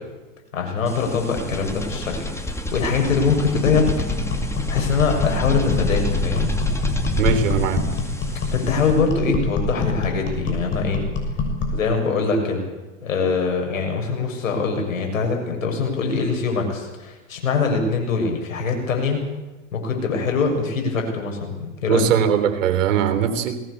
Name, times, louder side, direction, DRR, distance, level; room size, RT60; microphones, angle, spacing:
voice 1, 0.5-4.1 4.7-6.5 8.5-11.0 11.7-12.6 13.0-19.2 19.7-22.0, left 4 dB, 80° left, 3 dB, 7.1 m, -23 dB
sound 1, 0.9-9.1, left 2 dB, 5° left, 2.7 m, -27 dB
sound 2, 3.6-11.8, left 3 dB, 30° left, 6.3 m, -26 dB
voice 2, 7.2-7.8 21.9-23.6, right 7 dB, 70° right, 9 dB, 3.5 m, -20 dB
21.0 x 18.0 x 8.5 m, 1.1 s
hypercardioid pair, 105°, 39 cm